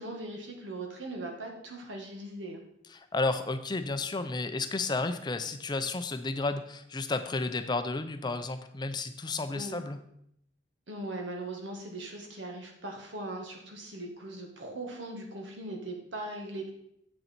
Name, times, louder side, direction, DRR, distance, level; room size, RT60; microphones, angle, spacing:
voice 1, 0.0-2.6 9.4-9.8 10.9-16.7, right 2 dB, 80° right, 2 dB, 1.8 m, -40 dB
voice 2, 2.9-10.0, left 3 dB, 25° left, 9 dB, 0.5 m, -32 dB
7.8 x 6.7 x 4.4 m, 0.74 s
head